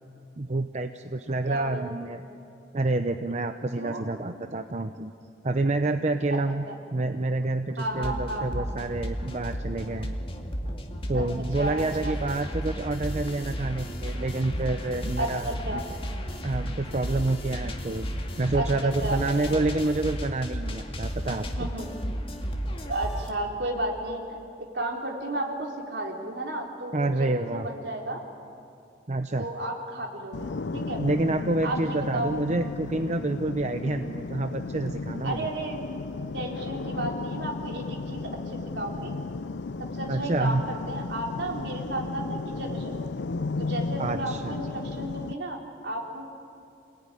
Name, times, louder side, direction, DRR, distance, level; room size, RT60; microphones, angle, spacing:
voice 1, 0.4-2.2 2.7-5.1 5.4-6.6 6.9-10.1 11.1-15.8 16.4-18.1 18.4-21.7 26.9-27.7 29.1-29.4 31.0-35.5 40.1-40.6 44.0-44.5, right 2 dB, 40° right, 7 dB, 0.7 m, -28 dB
voice 2, 1.5-1.9 3.8-4.0 6.7-6.8 7.8-8.7 11.1-11.2 11.6-12.1 15.2-15.9 18.5-19.2 21.3-21.9 22.8-24.2 24.6-28.2 29.4-31.0 31.6-32.3 35.2-35.8 36.3-39.1 39.8-43.1 43.6-46.3, right 1 dB, 70° right, 0 dB, 3.9 m, -33 dB
sound 1, 7.8-23.3, equal, 30° left, 2.2 m, -33 dB
sound 2, 11.6-19.4, equal, 25° right, 7.1 m, -52 dB
sound 3, 30.3-45.3, left 3 dB, 75° left, 0.5 m, -34 dB
27.5 x 18.5 x 9.9 m, 2.6 s
head